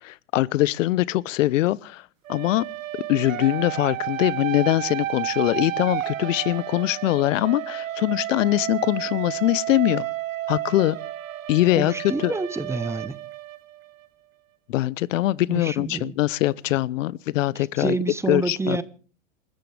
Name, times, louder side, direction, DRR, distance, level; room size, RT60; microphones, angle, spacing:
voice 1, 0.0-2.7 3.1-10.1 10.5-11.0 11.5-11.9 12.2-12.3 14.7-18.0 18.3-18.8, left 16 dB, 70° left, 0.8 m, -22 dB
sound 1, 2.2-14.1, right 14 dB, 75° right, 1.3 m, -32 dB
voice 2, 11.8-13.2 15.5-16.2 17.6-18.8, right 3 dB, 5° right, 0.9 m, -28 dB
27.5 x 14.0 x 3.4 m
hypercardioid pair, 120°, 40 cm